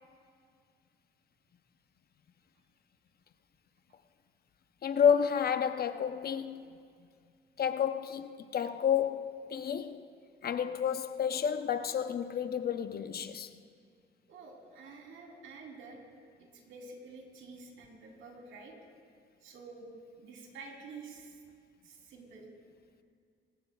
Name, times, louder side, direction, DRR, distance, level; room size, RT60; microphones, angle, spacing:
voice 1, 4.8-6.8 7.6-10.0 10.4-13.5, left 8 dB, 50° left, 0.7 m, -30 dB
voice 2, 14.3-16.0 16.4-18.7 19.4-19.9 20.2-21.4 21.8-22.5, right 4 dB, 80° right, 3.5 m, -49 dB
26.0 x 14.5 x 2.4 m
cardioid pair, 90°, 20 cm